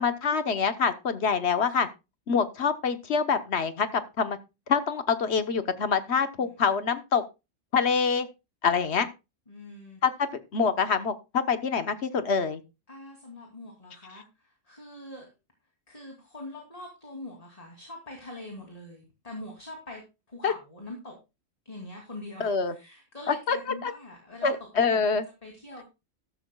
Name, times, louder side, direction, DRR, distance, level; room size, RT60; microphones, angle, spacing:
voice 1, 0.0-1.9 2.3-4.4 4.7-7.2 7.7-8.3 8.6-9.1 10.0-12.6 20.4-20.5 22.4-22.7 23.3-23.6 23.8-23.9 24.4-25.2, left 5 dB, 55° left, 10 dB, 1.3 m, -25 dB
voice 2, 9.5-10.0 12.9-15.3 15.9-21.2 21.6-25.9, left 2 dB, 25° left, 1 dB, 2.8 m, -44 dB
13.5 x 13.0 x 2.3 m, 0.27 s
omnidirectional pair, 1.4 m